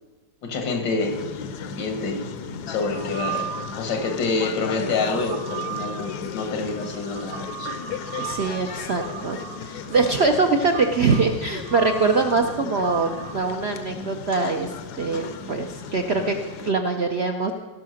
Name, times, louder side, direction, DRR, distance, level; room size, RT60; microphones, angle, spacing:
voice 1, 0.4-1.2 1.8-2.3 2.7-3.5 3.8-7.7, left 4 dB, 85° left, 5 dB, 2.1 m, -27 dB
sound 1, 1.0-16.7, left 6 dB, 70° left, 1.2 m, -36 dB
sound 2, 2.9-4.2 4.7-13.3, right 9 dB, 90° right, 2.3 m, -36 dB
voice 2, 8.2-17.5, right 4 dB, 65° right, 4 dB, 0.6 m, -23 dB
16.0 x 5.7 x 6.4 m, 1.3 s
omnidirectional pair, 1.9 m